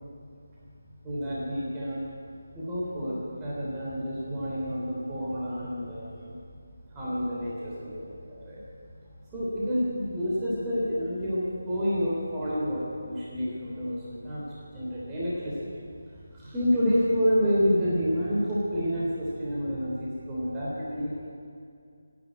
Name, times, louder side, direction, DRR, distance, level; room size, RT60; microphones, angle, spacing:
voice 1, 1.0-2.0 2.5-6.3 6.9-8.6 9.3-15.7 16.3-21.3, equal, 15° right, -8 dB, 3.3 m, -29 dB
15.0 x 9.8 x 8.7 m, 2.3 s
figure-of-eight pair, 160°, 0 cm